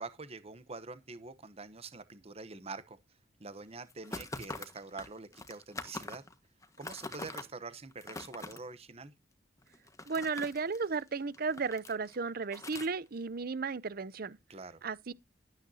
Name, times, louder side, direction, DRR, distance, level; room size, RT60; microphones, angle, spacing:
voice 1, 0.0-3.0 3.4-6.2 6.8-9.1 14.5-14.8, right 3 dB, 35° right, 1.0 m, -45 dB
sound 1, 3.9-6.3 6.6-7.4 7.9-8.6 9.6-11.0 11.3-12.2 12.5-12.9, left 2 dB, 20° left, 1.5 m, -43 dB
voice 2, 10.1-14.4 14.8-15.1, right 4 dB, 55° right, 0.7 m, -34 dB
12.5 x 9.1 x 2.8 m
head